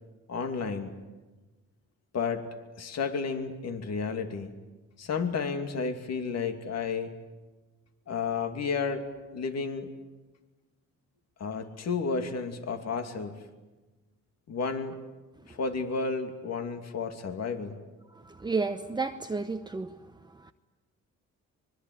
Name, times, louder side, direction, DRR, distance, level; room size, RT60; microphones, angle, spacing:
voice 1, 0.3-0.9 2.1-2.5 2.8-4.5 5.0-7.2 8.1-9.1 9.3-9.9 11.4-13.4 14.5-15.0 15.5-17.8, left 5 dB, 60° left, 2.7 m, -32 dB
voice 2, 18.2-20.0 20.3-20.5, right 4 dB, 15° right, 0.9 m, -32 dB
25.0 x 22.0 x 9.6 m
cardioid pair, 90°, 30 cm